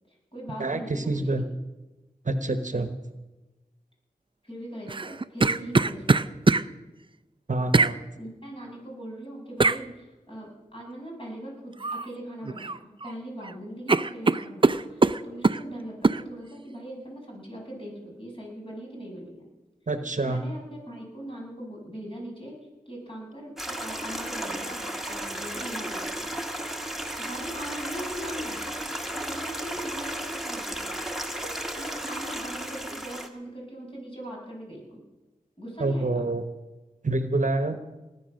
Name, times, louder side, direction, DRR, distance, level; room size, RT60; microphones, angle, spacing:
voice 1, 0.1-1.5 4.4-6.3 8.2-19.5 20.2-22.5 22.9-26.3 27.2-28.7 29.1-30.9 31.8-35.0 35.6-36.3, equal, 35° left, -2 dB, 6.9 m, -40 dB
voice 2, 0.6-1.4 2.2-2.9 7.5-8.0 19.9-20.4 35.8-36.4 37.0-37.8, right 2 dB, 50° right, 9 dB, 1.1 m, -27 dB
sound 1, 4.9-6.7 7.7-8.0 9.6-9.8 11.8-12.1 12.4-13.1 13.4-13.5 13.9-15.6 16.0-16.2, right 3 dB, 30° right, 0.5 m, -22 dB
Stream, 23.6-33.3, right 1 dB, ahead, 1.7 m, -34 dB
19.5 x 9.6 x 6.5 m, 1.1 s
wide cardioid pair, 50°, 16 cm